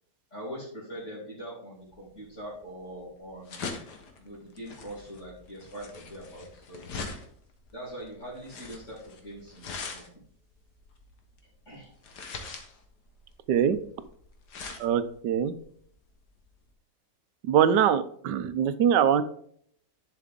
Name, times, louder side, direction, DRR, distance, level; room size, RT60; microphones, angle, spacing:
voice 1, 0.3-3.7 4.2-6.9 7.7-10.1 11.7-11.9, equal, 45° left, -7 dB, 3.5 m, -42 dB
sound 1, 1.9-16.7, left 4 dB, 75° left, 1.9 m, -43 dB
voice 2, 14.8-15.5 17.4-19.2, right 8 dB, 90° right, 13 dB, 1.3 m, -23 dB
11.0 x 5.7 x 3.6 m, 0.64 s
omnidirectional pair, 1.8 m